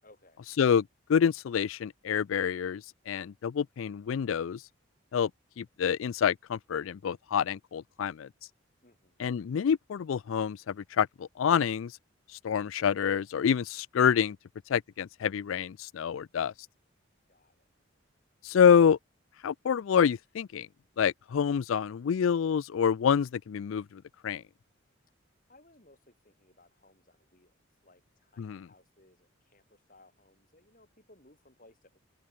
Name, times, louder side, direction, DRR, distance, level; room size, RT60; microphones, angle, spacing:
voice 1, 0.0-0.4 8.8-9.2 17.3-17.7 25.5-27.5 27.8-32.0, left 2 dB, 40° left, 6.9 m, -61 dB
voice 2, 0.6-4.6 5.1-5.3 5.6-8.3 9.2-11.9 12.4-14.4 14.7-16.5 18.4-19.0 19.4-20.7 21.0-24.4 28.4-28.7, left 7 dB, 80° left, 0.4 m, -27 dB
open air
head